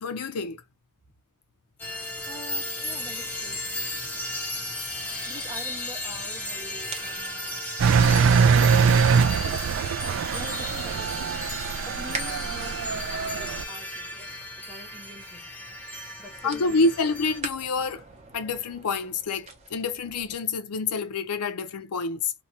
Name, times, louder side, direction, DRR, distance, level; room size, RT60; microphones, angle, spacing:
voice 1, 0.0-0.6 16.4-18.0 18.3-22.3, left 3 dB, 85° left, 0.5 m, -27 dB
sound 1, 1.8-17.4, left 1 dB, 10° left, 0.6 m, -35 dB
voice 2, 2.3-3.6 5.3-7.6 10.3-11.5 11.8-15.5 16.2-16.9, equal, 15° right, 1.0 m, -45 dB
sound 2, 2.8-20.4, right 4 dB, 30° right, 0.7 m, -46 dB
Engine, 7.8-13.6, right 6 dB, 60° right, 0.3 m, -22 dB
2.8 x 2.1 x 2.6 m
head